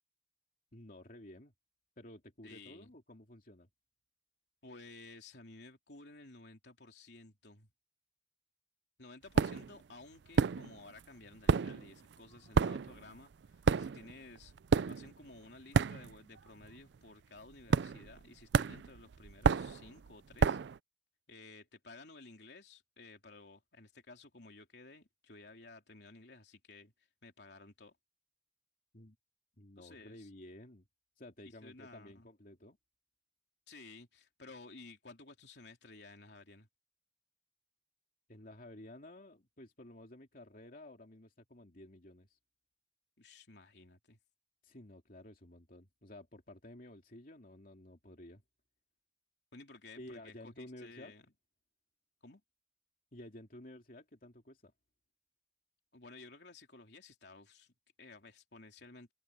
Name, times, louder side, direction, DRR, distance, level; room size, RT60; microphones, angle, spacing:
voice 1, 0.7-1.5 2.0-3.7 28.9-29.2 29.6-30.9 31.2-32.8 38.3-42.4 44.6-48.4 50.0-51.1 53.1-54.7, left 1 dB, 50° left, 2.9 m, -53 dB
voice 2, 2.4-2.9 4.6-7.7 9.0-14.5 14.8-20.6 21.3-26.9 27.2-28.0 29.8-30.3 31.6-32.3 33.7-36.7 43.2-44.2 49.5-51.3 52.2-52.4 55.9-59.1, left 3 dB, 65° left, 3.6 m, -55 dB
sound 1, 9.4-9.8 10.3-11.0 11.3-16.4 16.6-17.0 17.7-18.2 18.5-20.8, right 5 dB, 70° right, 0.4 m, -30 dB
head